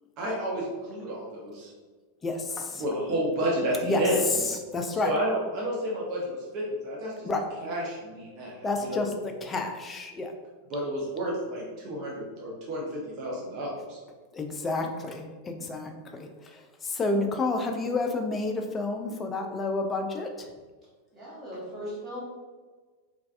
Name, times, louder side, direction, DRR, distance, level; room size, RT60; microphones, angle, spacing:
voice 1, 0.2-1.7 2.8-4.2 5.0-7.3 7.6-9.1 10.7-14.0, equal, 40° right, -4 dB, 0.7 m, -31 dB
voice 2, 2.2-2.8 3.8-4.0 4.5-5.1 7.3-7.5 8.6-10.3 14.3-20.5, left 2 dB, 20° left, 4 dB, 0.4 m, -30 dB
voice 3, 21.1-22.2, equal, 20° right, -7 dB, 1.2 m, -38 dB
3.2 x 2.4 x 2.4 m, 1.4 s
figure-of-eight pair, 90°, 0 cm